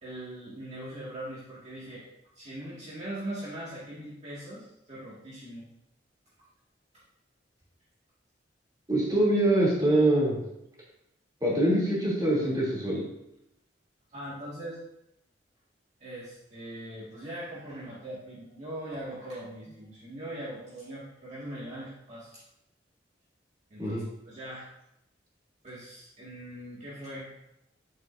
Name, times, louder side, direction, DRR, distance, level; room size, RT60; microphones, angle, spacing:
voice 1, 0.0-2.0 2.4-5.7 14.1-14.8 16.0-22.4 23.7-24.7 25.6-27.3, right 1 dB, 40° right, -9 dB, 1.9 m, -41 dB
voice 2, 8.9-10.4 11.4-13.0 23.8-24.0, right 1 dB, 20° right, -5 dB, 2.9 m, -24 dB
8.7 x 7.8 x 2.6 m, 0.83 s
head